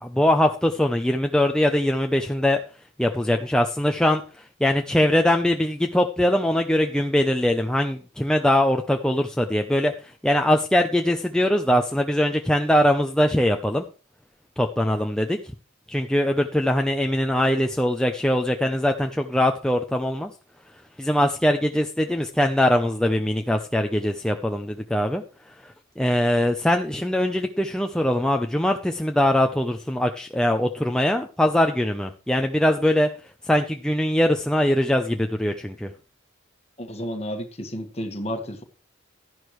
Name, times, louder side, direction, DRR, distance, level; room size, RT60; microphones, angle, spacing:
voice 1, 0.0-2.6 3.0-13.8 14.6-15.4 15.9-20.3 21.0-33.1 33.4-35.9, left 1 dB, 5° left, 0.6 m, -22 dB
voice 2, 36.8-38.6, equal, 30° left, 1.7 m, -31 dB
12.5 x 11.0 x 3.2 m
head